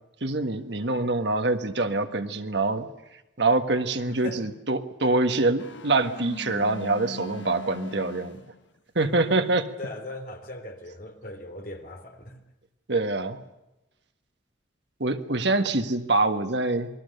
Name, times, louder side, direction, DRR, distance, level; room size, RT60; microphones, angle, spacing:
voice 1, 0.2-2.9 3.4-8.4 8.9-9.7 12.9-13.4 15.0-16.9, right 2 dB, 60° right, 8 dB, 1.6 m, -25 dB
voice 2, 4.1-4.5 9.8-12.4, left 1 dB, 50° left, 4 dB, 3.5 m, -39 dB
sound 1, 5.6-8.7, left 2 dB, 70° left, 1.4 m, -40 dB
27.5 x 21.0 x 6.8 m, 0.95 s
head